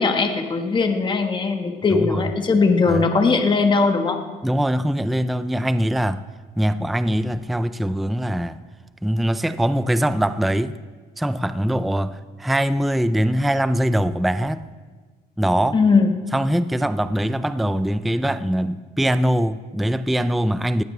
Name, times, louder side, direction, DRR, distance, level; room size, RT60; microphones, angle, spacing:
voice 1, 0.0-4.2 15.7-16.2, left 4 dB, 30° left, 4 dB, 1.4 m, -19 dB
voice 2, 1.9-2.3 2.9-3.0 4.4-6.3 6.6-8.6 9.0-10.8 11.2-14.7 15.4-15.8 16.3-20.8, equal, ahead, 13 dB, 0.4 m, -22 dB
19.0 x 15.5 x 3.3 m, 1.4 s
cardioid pair, 110°, 17 cm